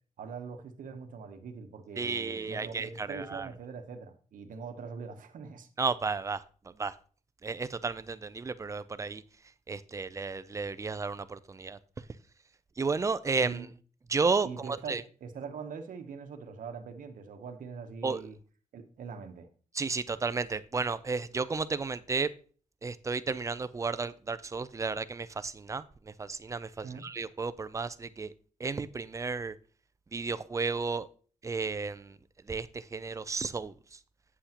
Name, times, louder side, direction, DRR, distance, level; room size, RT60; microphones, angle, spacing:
voice 1, 0.2-5.7 13.4-13.7 14.4-18.4 18.7-19.5 26.8-27.1, right 5 dB, 70° right, 1.0 m, -42 dB
voice 2, 2.0-3.5 5.8-6.9 7.4-9.2 9.7-11.8 12.8-13.7 14.1-15.0 18.0-18.3 19.7-22.3 22.8-28.3 28.6-29.5 30.1-31.1 31.4-32.2 32.5-34.0, right 4 dB, 20° right, 0.4 m, -33 dB
8.3 x 7.8 x 2.9 m
wide cardioid pair, 135°, 14 cm